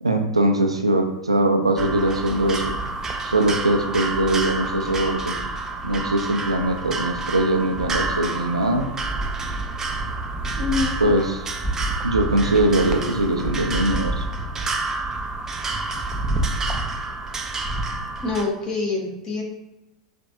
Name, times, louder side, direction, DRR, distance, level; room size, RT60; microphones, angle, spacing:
voice 1, 0.0-2.8 3.2-5.4 5.8-8.9 11.0-11.3 12.0-14.2, right 1 dB, 80° right, 4 dB, 0.4 m, -21 dB
sound 1, 1.8-18.4, right 2 dB, 15° right, 0.4 m, -28 dB
voice 2, 10.6-11.0 18.2-19.4, left 4 dB, 25° left, 0 dB, 0.9 m, -25 dB
4.2 x 2.5 x 2.6 m, 0.94 s
figure-of-eight pair, 90°, 3 cm